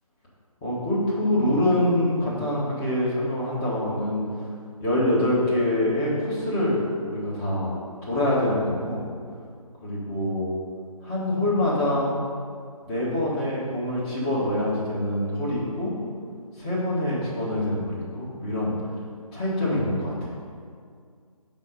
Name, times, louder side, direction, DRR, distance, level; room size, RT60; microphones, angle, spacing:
voice 1, 0.6-4.2 4.8-7.7 8.0-9.0 9.8-10.6 11.0-12.1 12.8-15.9 16.6-18.7 19.3-20.3, left 1 dB, 15° left, -8 dB, 1.2 m, -25 dB
5.7 x 4.9 x 5.2 m, 2.2 s
figure-of-eight pair, 155°, 19 cm